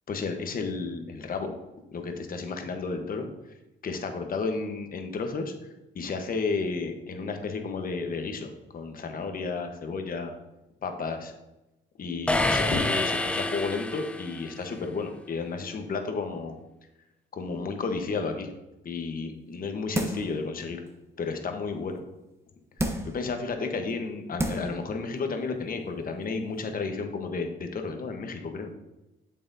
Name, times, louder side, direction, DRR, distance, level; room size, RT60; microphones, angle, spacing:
voice 1, 0.1-1.5 1.9-3.3 3.8-5.5 5.9-10.3 10.8-11.3 12.0-16.6 17.3-18.5 18.8-20.8 21.2-22.0 22.8-28.7, left 4 dB, 45° left, 5 dB, 1.1 m, -32 dB
sound 1, 12.3-14.5, left 2 dB, 5° left, 0.6 m, -27 dB
sound 2, 19.9-20.4 20.9-21.0 22.8-23.2 23.9-24.0 24.4-24.8 25.2-25.3, right 1 dB, 15° right, 1.0 m, -30 dB
7.7 x 7.4 x 2.7 m, 0.96 s
cardioid pair, 90°, 20 cm